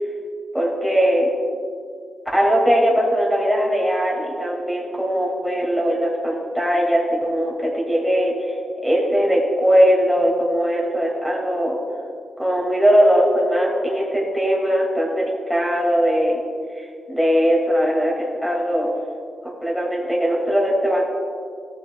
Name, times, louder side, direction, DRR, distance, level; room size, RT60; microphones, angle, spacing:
voice 1, 0.5-1.3 2.3-8.6 8.8-11.8 12.4-16.4 17.1-18.9 19.4-21.0, equal, ahead, -3 dB, 2.2 m, -20 dB
14.0 x 6.8 x 2.3 m, 2.2 s
cardioid pair, 65°, 0 cm